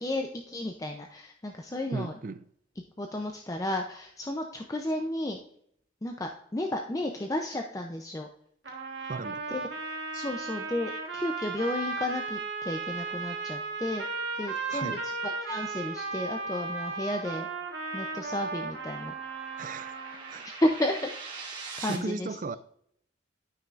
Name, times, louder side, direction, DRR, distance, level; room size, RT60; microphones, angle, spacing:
voice 1, 0.0-2.2 3.0-5.4 6.0-8.3 9.5-9.7 10.1-14.0 14.4-17.5 17.9-19.1 20.6-21.5 21.8-22.4, left 1 dB, 20° left, 0.5 m, -32 dB
voice 2, 1.9-2.5 9.1-9.4 10.1-10.3 14.7-15.0 19.6-19.9 20.3-20.6 21.8-22.6, right 3 dB, 45° right, 0.4 m, -36 dB
sound 1, 8.7-20.3, right 4 dB, 75° right, 1.3 m, -35 dB
sound 2, 15.1-22.0, right 4 dB, 25° right, 1.7 m, -45 dB
12.5 x 5.8 x 2.5 m
head